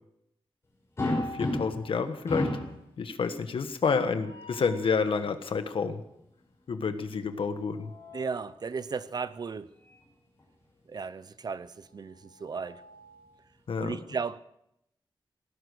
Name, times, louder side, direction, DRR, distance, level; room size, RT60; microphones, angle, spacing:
voice 1, 1.0-2.6 3.0-6.0 6.7-7.9 13.7-14.0, left 5 dB, 75° left, 1.4 m, -29 dB
sound 1, 1.0-1.9 2.3-2.8 4.0-4.7 7.4-8.4 9.8-10.0 10.4-10.5 12.0-13.3, left 1 dB, 30° left, 5.9 m, -35 dB
voice 2, 8.1-9.7 10.9-12.8 13.8-14.4, right 5 dB, 50° right, 0.6 m, -35 dB
18.5 x 12.0 x 6.4 m
wide cardioid pair, 175°, 9 cm